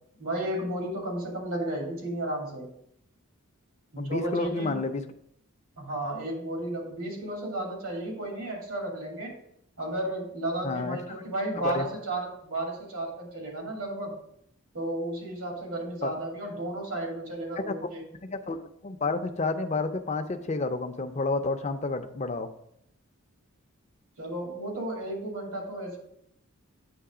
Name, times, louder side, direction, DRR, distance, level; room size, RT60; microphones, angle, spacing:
voice 1, 0.2-2.7 3.9-4.8 5.8-9.3 9.8-14.1 14.7-18.0 24.2-26.0, right 1 dB, 90° right, -1 dB, 2.5 m, -33 dB
voice 2, 4.0-5.0 10.6-11.0 11.6-11.9 16.0-16.1 17.6-17.9 18.2-22.5, left 3 dB, 30° left, 8 dB, 0.4 m, -30 dB
8.7 x 3.1 x 4.8 m, 0.71 s
head